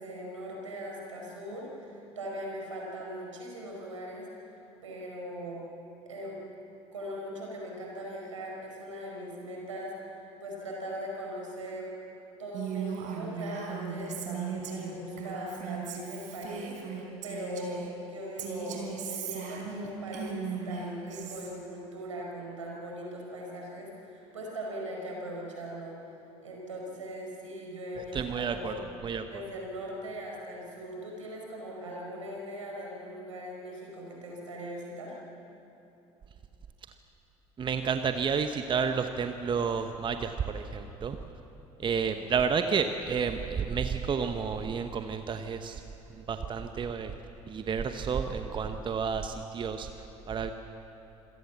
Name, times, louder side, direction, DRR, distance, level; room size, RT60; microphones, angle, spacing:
voice 1, 0.0-4.3 4.8-5.6 6.1-6.4 6.9-11.9 12.4-26.0 26.4-28.8 29.3-35.2, equal, 80° right, -2 dB, 5.1 m, -40 dB
Female speech woman speaking, 12.5-17.9 18.4-21.5, right 6 dB, 50° right, 4.2 m, -37 dB
voice 2, 28.0-29.2 37.6-41.2 41.8-45.8 46.2-47.1 47.5-49.9 50.3-50.5, right 6 dB, 30° right, 8 dB, 1.0 m, -31 dB
26.5 x 17.5 x 7.1 m, 2.9 s
figure-of-eight pair, 60°, 16 cm